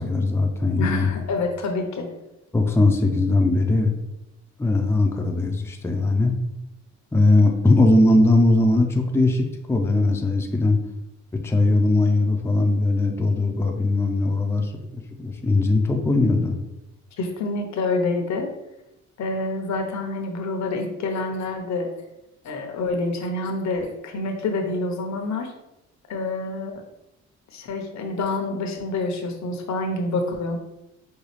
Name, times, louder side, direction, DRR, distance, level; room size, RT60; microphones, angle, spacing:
voice 1, 0.0-1.1 2.5-3.9 4.6-6.3 7.1-10.8 11.3-16.6, left 2 dB, 10° left, 3 dB, 0.5 m, -20 dB
voice 2, 0.8-2.1 17.2-18.5 19.2-21.9 22.4-25.5 26.1-26.7 27.5-30.6, left 2 dB, 65° left, 4 dB, 0.9 m, -27 dB
5.4 x 2.3 x 3.2 m, 0.92 s
cardioid pair, 90°, 30 cm